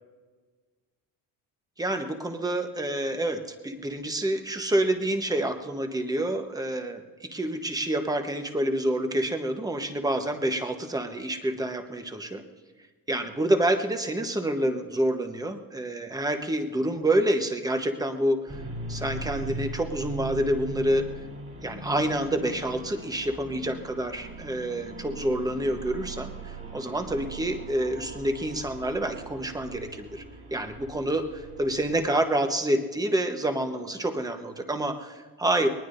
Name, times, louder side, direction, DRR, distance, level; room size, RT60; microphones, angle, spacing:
voice 1, 1.8-12.4 13.1-18.6 18.9-21.0 21.6-30.2 30.5-35.7, right 1 dB, 10° right, 6 dB, 1.1 m, -28 dB
sound 1, 18.5-32.1, right 3 dB, 40° right, 3.0 m, -40 dB
21.5 x 19.5 x 2.6 m, 1.4 s
cardioid pair, 130°, 41 cm